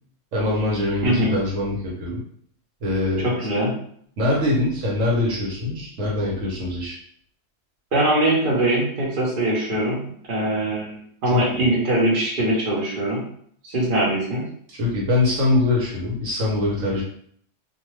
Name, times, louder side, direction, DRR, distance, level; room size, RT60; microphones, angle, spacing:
voice 1, 0.3-2.2 2.8-3.3 4.2-6.9 11.3-11.6 14.7-17.0, left 2 dB, 80° right, -4 dB, 1.2 m, -23 dB
voice 2, 3.2-3.7 7.9-10.0 10.3-13.2 13.6-14.4, right 1 dB, 45° right, -4 dB, 1.0 m, -22 dB
2.6 x 2.3 x 3.1 m, 0.62 s
omnidirectional pair, 1.3 m